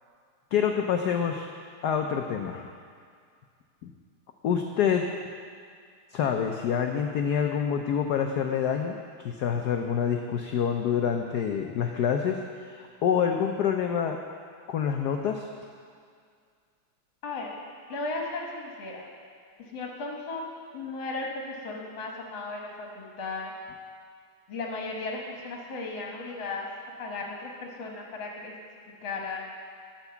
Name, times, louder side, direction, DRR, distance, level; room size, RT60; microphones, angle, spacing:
voice 1, 0.5-1.5 1.8-2.7 3.8-3.9 4.4-5.1 6.1-14.2 14.7-15.5, left 7 dB, 85° left, 4 dB, 0.9 m, -27 dB
voice 2, 17.2-17.5 17.9-19.0 19.6-20.5 20.7-23.5 24.5-26.7 27.0-28.5 29.0-29.5, left 3 dB, 65° left, -1 dB, 1.9 m, -35 dB
11.5 x 6.1 x 6.8 m, 2.1 s
omnidirectional pair, 2.4 m